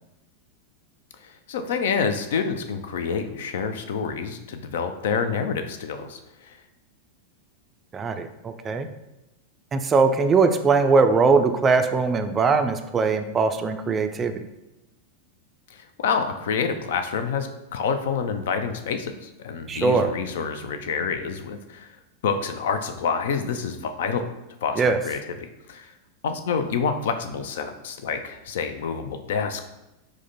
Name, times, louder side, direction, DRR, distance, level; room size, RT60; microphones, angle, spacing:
voice 1, 1.2-6.6 15.7-21.9 22.2-24.2 24.6-25.9 26.2-29.7, left 6 dB, 55° left, 8 dB, 0.4 m, -28 dB
voice 2, 7.9-8.9 9.7-14.4 19.7-20.1 24.8-25.0, right 4 dB, 20° right, 8 dB, 0.3 m, -21 dB
4.9 x 2.1 x 4.0 m, 0.96 s
figure-of-eight pair, 90°, 0 cm